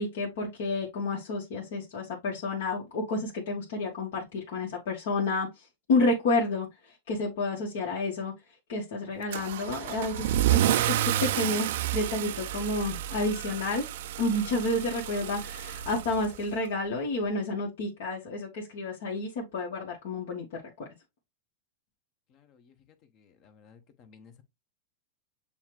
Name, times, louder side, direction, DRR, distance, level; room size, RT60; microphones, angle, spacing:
voice 1, 0.0-5.6 5.9-6.7 7.1-8.3 8.7-13.8 14.2-20.4 20.8-20.9, left 2 dB, 70° left, 1.4 m, -30 dB
Car / Engine starting / Accelerating revving vroom, 9.3-16.7, right 12 dB, 70° right, 0.4 m, -30 dB
voice 2, 22.3-22.7 23.1-24.4, left 6 dB, 45° left, 0.9 m, -57 dB
6.9 x 2.4 x 3.0 m
hypercardioid pair, 125°, 0 cm